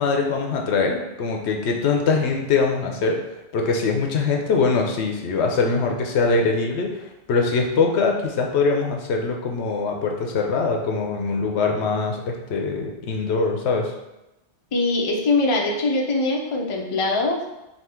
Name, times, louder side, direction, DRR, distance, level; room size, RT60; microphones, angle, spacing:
voice 1, 0.0-3.2 3.5-13.9, left 4 dB, 75° left, 2 dB, 0.9 m, -22 dB
voice 2, 14.7-17.4, left 2 dB, 40° left, 0 dB, 0.5 m, -22 dB
3.5 x 2.8 x 4.3 m, 0.97 s
omnidirectional pair, 1.2 m